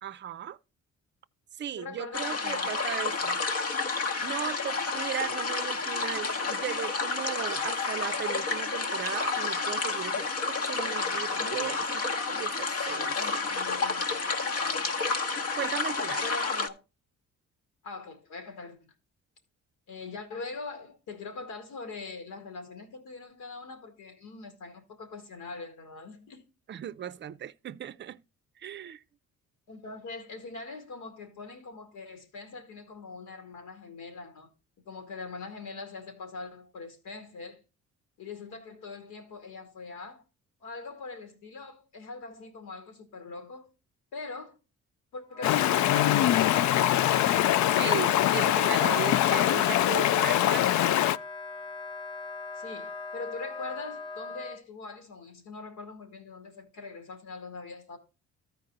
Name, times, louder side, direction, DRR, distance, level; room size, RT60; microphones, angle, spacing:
voice 1, 0.0-0.6 1.6-3.4 4.2-13.2 15.6-16.2 26.7-28.2 28.6-29.0 47.8-50.8, right 10 dB, 40° right, 0.5 m, -37 dB
voice 2, 1.7-2.7 3.0-3.5 11.4-11.9 13.1-15.1 16.2-16.7 17.8-18.9 19.9-26.5 29.7-34.5 34.9-37.6 38.2-40.2 40.6-43.7 44.1-44.6 45.1-47.1 49.3-49.5 50.2-51.0 52.5-58.0, left 3 dB, 85° left, 2.4 m, -42 dB
sound 1, 2.1-16.7, left 4 dB, 50° left, 1.1 m, -30 dB
Wind instrument woodwind instrument, 45.3-54.6, left 4 dB, 15° left, 0.6 m, -40 dB
Stream, 45.4-51.2, left 13 dB, 70° left, 0.4 m, -23 dB
13.5 x 4.6 x 3.8 m
cardioid pair, 90°, 30 cm